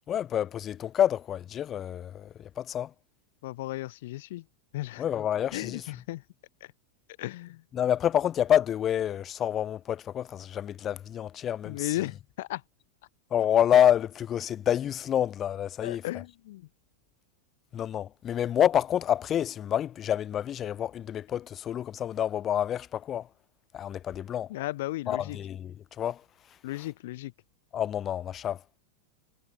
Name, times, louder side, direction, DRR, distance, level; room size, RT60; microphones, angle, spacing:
voice 1, 0.1-2.9 5.0-5.8 7.7-11.9 13.3-16.0 17.7-23.3 23.7-24.5 25.1-26.2 27.7-28.6, left 10 dB, 25° left, 0.4 m, -28 dB
voice 2, 3.4-4.4 4.7-5.1 5.5-6.2 6.6-6.7 7.2-7.6 11.6-12.6 15.8-16.7 24.5-25.4 26.6-27.3, left 17 dB, 55° left, 1.7 m, -35 dB
figure-of-eight pair, 90°, 0 cm